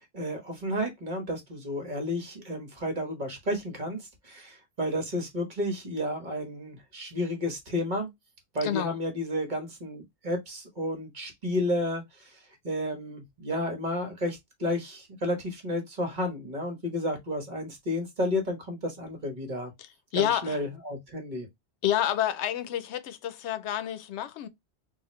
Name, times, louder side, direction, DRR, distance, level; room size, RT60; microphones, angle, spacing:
voice 1, 0.0-8.1 8.5-12.4 12.6-19.7 20.1-21.5, left 1 dB, 45° right, 1.3 m, -32 dB
voice 2, 8.6-9.0 19.8-20.6 21.8-24.5, left 11 dB, 90° left, 0.9 m, -29 dB
3.9 x 2.5 x 3.0 m
omnidirectional pair, 1.1 m